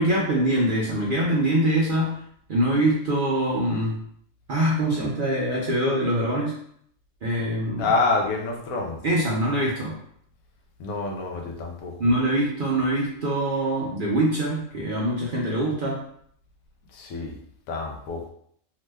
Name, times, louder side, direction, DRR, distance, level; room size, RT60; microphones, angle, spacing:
voice 1, 0.0-2.1 2.5-4.0 4.5-6.5 7.2-7.9 9.0-10.0 12.0-16.0, right 1 dB, 55° right, -4 dB, 0.6 m, -23 dB
voice 2, 7.8-9.0 10.8-11.9 16.9-17.4 17.7-18.3, left 3 dB, 80° left, 1 dB, 1.0 m, -27 dB
2.9 x 2.1 x 3.3 m, 0.65 s
omnidirectional pair, 1.5 m